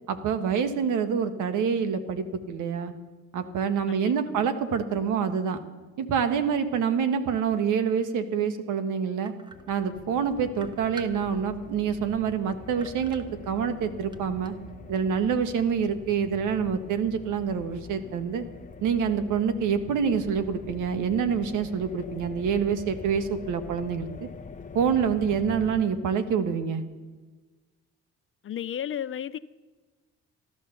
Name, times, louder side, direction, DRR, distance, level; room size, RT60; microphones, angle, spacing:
voice 1, 0.1-2.9 3.3-5.6 6.0-9.3 9.7-14.5 14.9-18.4 18.8-24.3 24.7-26.8, right 7 dB, 85° right, 1.3 m, -26 dB
voice 2, 3.9-4.5 28.4-29.4, left 9 dB, 45° left, 0.5 m, -34 dB
sound 1, 9.2-10.2 10.5-11.6 12.1-12.2 12.8-13.8 14.1-14.7, right 4 dB, 15° right, 1.2 m, -46 dB
sound 2, 9.5-25.8, left 4 dB, 25° left, 0.9 m, -44 dB
14.0 x 12.0 x 6.9 m
cardioid pair, 90°, 30 cm